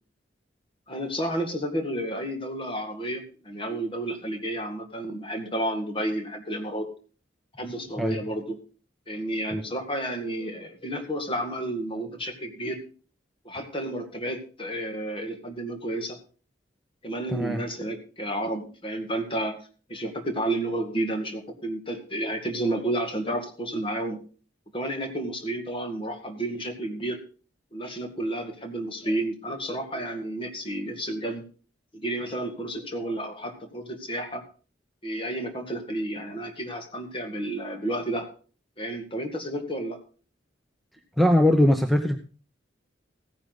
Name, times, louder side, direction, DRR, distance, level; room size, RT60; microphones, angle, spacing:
voice 1, 0.9-6.9 7.6-8.6 9.1-12.8 13.4-16.2 17.0-19.6 19.9-24.2 24.7-27.2 27.7-31.4 31.9-34.4 35.0-38.3 38.8-40.0, right 1 dB, 30° left, 5 dB, 2.1 m, -31 dB
voice 2, 41.2-42.2, left 1 dB, ahead, 6 dB, 0.8 m, -20 dB
15.5 x 10.0 x 4.1 m, 0.38 s
head